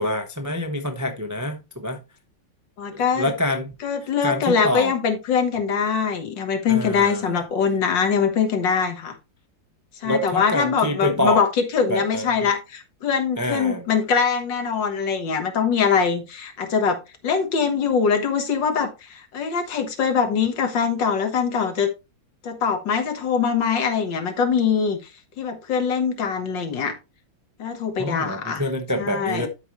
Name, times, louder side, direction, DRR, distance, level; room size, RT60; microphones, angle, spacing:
voice 1, 0.0-2.0 2.9-3.7 4.0-4.9 6.7-7.4 10.0-11.4 11.9-12.5 13.4-13.9 28.0-29.5, left 1 dB, 20° right, 0.4 m, -26 dB
voice 2, 2.8-3.3 3.8-9.1 10.0-11.5 11.7-17.0 17.2-21.9 22.4-25.0 25.4-26.9 27.6-28.6 29.0-29.5, left 6 dB, 70° left, 2.0 m, -23 dB
12.0 x 5.0 x 3.1 m
omnidirectional pair, 2.1 m